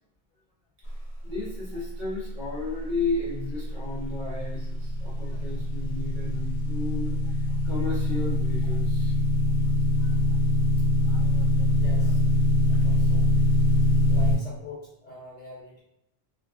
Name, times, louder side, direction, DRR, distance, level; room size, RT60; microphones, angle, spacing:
voice 1, 1.2-9.1 10.0-10.1 11.0-11.7, left 3 dB, 45° right, -9 dB, 1.3 m, -34 dB
sound 1, 3.5-14.4, left 1 dB, 85° left, 0.9 m, -23 dB
voice 2, 11.7-12.2 12.7-13.3 14.1-15.8, left 2 dB, 50° left, -6 dB, 0.5 m, -44 dB
2.9 x 2.3 x 2.3 m, 0.82 s
omnidirectional pair, 1.1 m